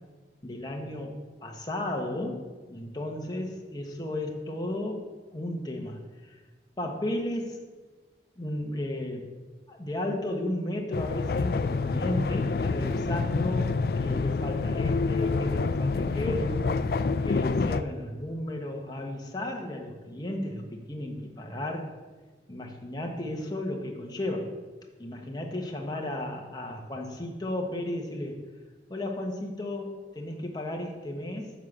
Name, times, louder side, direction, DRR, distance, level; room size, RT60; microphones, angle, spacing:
voice 1, 0.4-2.4 2.7-6.4 6.8-7.6 8.4-9.3 9.7-16.7 17.2-21.9 22.5-24.5 25.0-28.4 28.9-31.5, left 1 dB, 25° left, 1 dB, 1.2 m, -34 dB
sound 1, 10.9-17.8, left 4 dB, 60° left, 0.4 m, -27 dB
7.4 x 6.4 x 7.3 m, 1.3 s
head